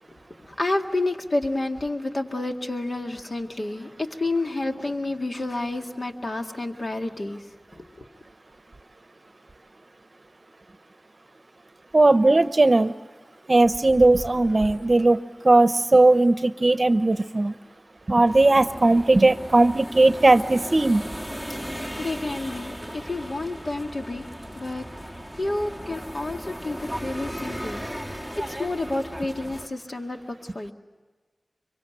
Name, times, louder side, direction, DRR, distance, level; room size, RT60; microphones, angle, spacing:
voice 1, 0.4-7.4 7.7-8.0 21.5-24.3 24.6-24.9 25.4-30.7, left 2 dB, 65° left, 3 dB, 1.9 m, -30 dB
voice 2, 11.9-12.9 13.5-17.5 18.1-21.1, right 2 dB, 50° right, 11 dB, 0.7 m, -18 dB
sound 1, 18.2-29.7, equal, 15° left, 1.5 m, -36 dB
25.0 x 24.0 x 9.2 m, 1.4 s
wide cardioid pair, 55°, 0 cm